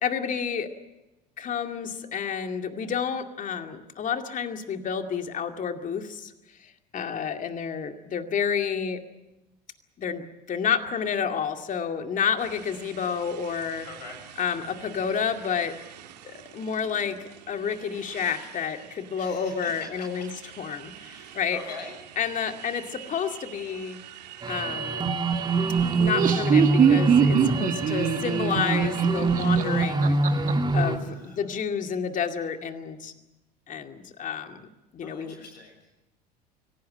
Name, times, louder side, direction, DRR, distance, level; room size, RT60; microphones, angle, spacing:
voice 1, 0.0-0.7 1.4-6.3 6.6-9.0 10.0-13.9 14.4-15.7 16.2-20.3 20.6-21.6 22.2-24.0 24.5-25.1 26.0-30.4 30.7-33.1 33.7-34.7 34.9-35.3, left 7 dB, 40° left, 6 dB, 2.3 m, -30 dB
Motorcycle, 12.4-30.0, right 11 dB, 75° right, 1.9 m, -42 dB
voice 2, 13.8-14.2 19.2-20.1 21.0-21.9 31.0-31.5 35.0-35.9, left 4 dB, 80° left, 3 dB, 6.5 m, -43 dB
sound 1, 24.4-31.0, right 3 dB, 20° right, 2.2 m, -25 dB
Laughter, 25.9-30.5, right 8 dB, 40° right, 2.0 m, -23 dB
24.5 x 17.5 x 8.7 m, 0.99 s
figure-of-eight pair, 65°, 21 cm